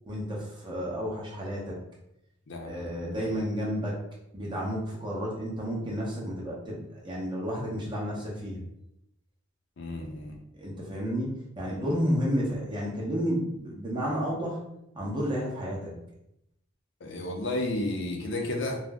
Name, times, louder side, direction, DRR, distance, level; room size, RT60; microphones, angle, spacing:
voice 1, 0.1-1.8 2.6-3.9 4.3-8.6 10.6-14.6 14.9-15.9, equal, 25° right, -4 dB, 0.7 m, -31 dB
voice 2, 2.5-3.4 9.8-10.4 17.0-18.8, left 1 dB, 60° left, 1 dB, 0.5 m, -33 dB
2.4 x 2.0 x 3.4 m, 0.82 s
head